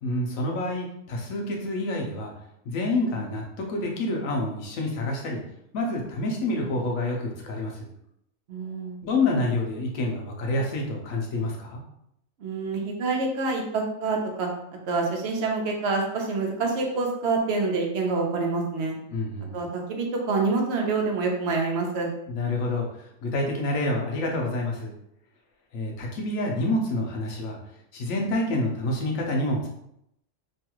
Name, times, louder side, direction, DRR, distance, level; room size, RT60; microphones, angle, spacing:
voice 1, 0.0-2.3 2.7-5.4 5.7-7.9 9.0-11.8 19.1-19.5 22.3-22.9 23.2-24.9 25.7-27.6 27.9-29.7, left 2 dB, 90° left, 0 dB, 1.2 m, -28 dB
voice 2, 8.5-9.0 12.4-14.5 14.9-19.0 19.5-22.1, right 3 dB, 60° right, 1 dB, 0.9 m, -26 dB
3.1 x 2.3 x 2.9 m, 0.76 s
omnidirectional pair, 1.3 m